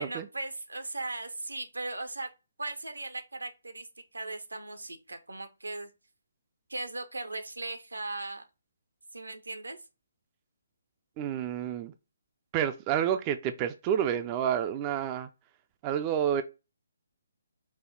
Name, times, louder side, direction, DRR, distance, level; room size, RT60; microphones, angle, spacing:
voice 1, 0.0-2.3 2.6-3.9 4.1-5.9 6.7-8.4 9.1-9.8, right 2 dB, 85° right, 0.8 m, -38 dB
voice 2, 11.2-11.9 12.5-15.3 15.8-16.4, right 9 dB, 25° right, 0.3 m, -29 dB
5.2 x 2.2 x 3.7 m
figure-of-eight pair, 145°, 0 cm